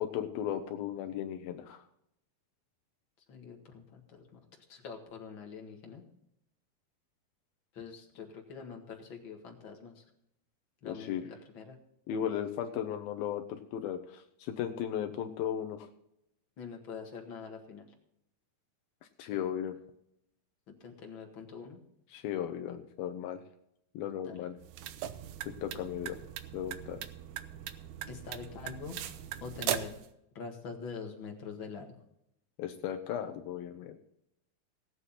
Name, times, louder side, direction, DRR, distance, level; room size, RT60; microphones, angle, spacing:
voice 1, 0.0-1.8 10.8-11.2 12.1-15.9 19.2-19.8 22.1-23.4 23.9-24.6 25.6-26.2 26.5-27.0 32.6-34.0, left 10 dB, 80° left, 5 dB, 2.6 m, -36 dB
voice 2, 3.3-4.3 4.7-6.0 7.7-10.0 10.8-11.8 16.6-17.8 20.8-21.8 24.2-24.4 28.1-29.0 29.4-30.0 30.3-31.9, left 5 dB, 45° left, 2 dB, 1.9 m, -44 dB
sound 1, 24.6-30.1, right 11 dB, 80° right, 1.7 m, -39 dB
18.0 x 8.2 x 4.2 m, 0.78 s
omnidirectional pair, 4.3 m